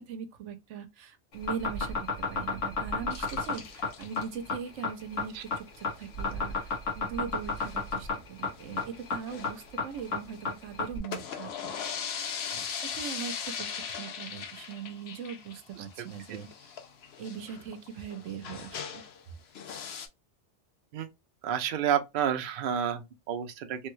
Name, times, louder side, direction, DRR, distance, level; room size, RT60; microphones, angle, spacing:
voice 1, 0.0-12.2 12.5-16.8 17.2-19.0, right 7 dB, 75° right, 1.0 m, -41 dB
sound 1, 1.3-11.0, left 4 dB, 80° left, 1.4 m, -31 dB
sound 2, 3.1-4.2 5.5-5.8 6.0-6.1 6.3-6.4 6.7-6.8 7.4-8.0 8.5-10.4 10.9-19.2 19.5-20.1, left 7 dB, 65° left, 0.8 m, -39 dB
voice 2, 21.4-23.9, right 8 dB, 60° right, 0.6 m, -30 dB
3.3 x 2.2 x 3.0 m
omnidirectional pair, 1.3 m